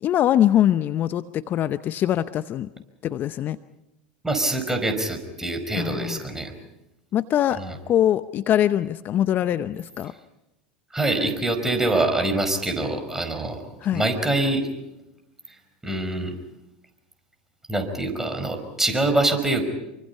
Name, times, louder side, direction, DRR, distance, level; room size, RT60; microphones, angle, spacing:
voice 1, 0.0-2.7 3.0-3.6 5.8-6.2 7.1-7.6 7.9-10.1 13.8-14.0, left 11 dB, 40° left, 13 dB, 0.7 m, -22 dB
voice 2, 4.2-6.5 7.6-7.7 10.9-13.6 13.9-14.7 15.8-16.3 17.7-19.6, right 2 dB, 10° right, 6 dB, 5.0 m, -24 dB
27.0 x 24.5 x 5.6 m, 0.93 s
hypercardioid pair, 85°, 5 cm